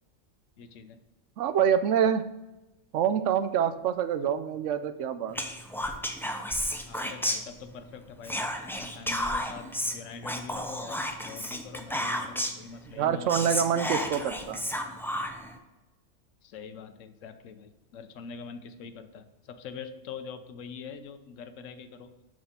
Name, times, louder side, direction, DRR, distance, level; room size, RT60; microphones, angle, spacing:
voice 1, 0.6-1.0 6.9-8.5 8.8-13.4 16.4-22.1, left 5 dB, 90° left, 9 dB, 1.1 m, -44 dB
voice 2, 1.4-2.2 2.9-5.4 13.0-14.7, right 8 dB, 80° right, 11 dB, 0.9 m, -26 dB
Whispering, 5.3-7.9 8.2-12.7 13.0-13.1 13.3-15.5, equal, 5° left, 0.4 m, -32 dB
6.2 x 6.1 x 5.6 m, 0.99 s
omnidirectional pair, 1.3 m